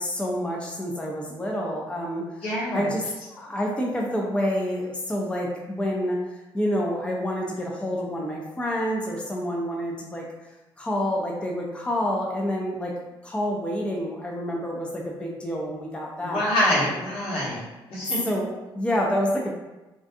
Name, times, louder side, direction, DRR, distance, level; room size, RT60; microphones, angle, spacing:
voice 1, 0.0-2.4 2.7-10.2 10.8-12.9 13.2-16.5 18.2-19.5, equal, 10° left, -1 dB, 0.4 m, -28 dB
voice 2, 2.4-2.9 16.2-17.6 17.9-18.2, equal, 75° left, -8 dB, 1.1 m, -25 dB
2.4 x 2.3 x 2.6 m, 1.1 s
cardioid pair, 80°, 10 cm